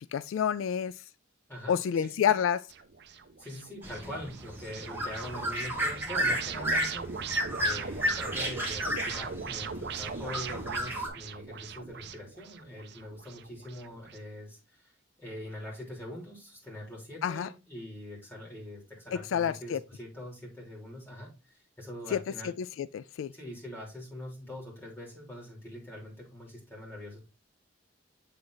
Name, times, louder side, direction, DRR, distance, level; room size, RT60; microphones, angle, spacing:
voice 1, 0.1-0.9 1.7-2.6 17.2-17.5 19.1-19.8 22.1-23.3, left 8 dB, 85° left, 0.3 m, -29 dB
voice 2, 1.5-2.4 3.1-7.1 7.6-14.9 15.2-22.5 23.3-27.2, left 1 dB, 10° left, 3.1 m, -43 dB
sound 1, 2.7-14.2, right 6 dB, 55° right, 0.6 m, -40 dB
sound 2, 3.8-11.1, equal, 10° right, 1.3 m, -33 dB
7.3 x 3.8 x 3.8 m
head